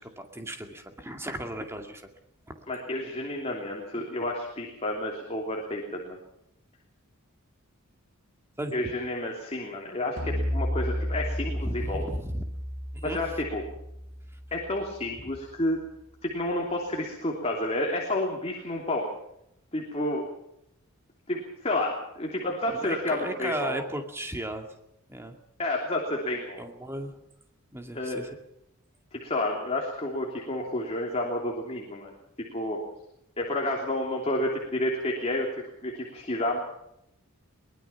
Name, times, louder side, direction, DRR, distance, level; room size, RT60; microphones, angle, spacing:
voice 1, 0.0-2.0 2.5-2.7 8.6-8.7 11.6-12.4 12.9-13.2 22.7-24.7 25.1-25.4 26.6-27.2 27.7-28.3, right 1 dB, 10° right, 4 dB, 2.2 m, -36 dB
voice 2, 2.7-6.2 8.7-12.1 13.0-13.6 14.5-15.8 16.2-19.1 19.7-20.3 21.3-23.8 25.6-26.6 27.9-28.2 29.1-32.2 32.5-32.8 33.4-36.6, left 1 dB, 30° left, -1 dB, 3.2 m, -30 dB
sound 1, 10.2-15.5, equal, 40° right, 3.0 m, -33 dB
23.0 x 20.0 x 6.0 m, 0.79 s
head